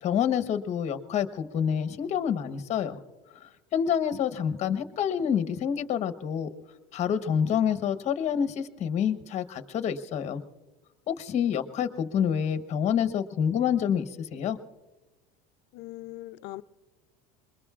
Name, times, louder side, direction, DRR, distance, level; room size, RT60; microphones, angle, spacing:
voice 1, 0.0-3.0 3.4-6.5 6.9-10.4 11.1-14.6, left 8 dB, 35° left, 1.1 m, -27 dB
voice 2, 15.7-16.6, left 17 dB, 55° left, 0.6 m, -40 dB
26.5 x 22.0 x 2.4 m
cardioid pair, 160°, 21 cm